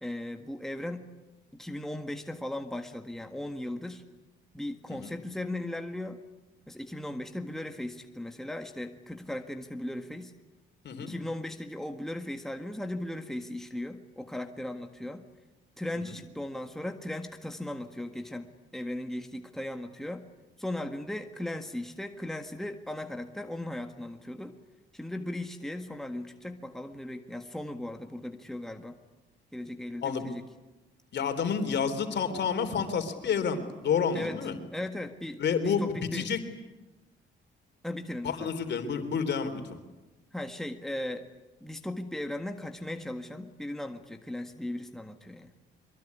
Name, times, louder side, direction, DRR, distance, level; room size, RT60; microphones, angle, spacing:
voice 1, 0.0-1.1 1.5-4.0 4.5-6.2 6.7-10.3 11.0-15.3 15.8-20.3 20.6-24.6 24.9-29.0 29.5-30.4 34.1-36.3 37.8-38.5 40.3-41.3 41.6-45.5, left 1 dB, ahead, 5 dB, 1.7 m, -37 dB
voice 2, 31.1-34.6 35.4-36.4 38.2-39.5, left 6 dB, 60° left, 7 dB, 3.6 m, -29 dB
23.5 x 22.5 x 9.6 m, 1.1 s
cardioid pair, 90°, 20 cm